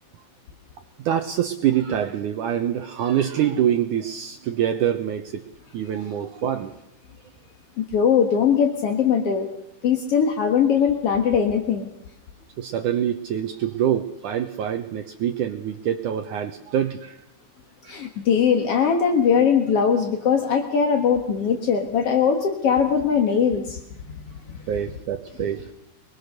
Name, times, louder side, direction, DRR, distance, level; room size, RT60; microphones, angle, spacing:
voice 1, 1.1-5.5 5.7-6.7 12.6-17.2 17.8-18.0 24.7-25.7, right 10 dB, 80° right, 6 dB, 1.8 m, -25 dB
voice 2, 7.8-9.5 9.8-11.9 17.9-23.8 24.5-24.6, left 7 dB, 60° left, 4 dB, 1.6 m, -20 dB
24.0 x 21.5 x 6.6 m, 0.79 s
omnidirectional pair, 4.9 m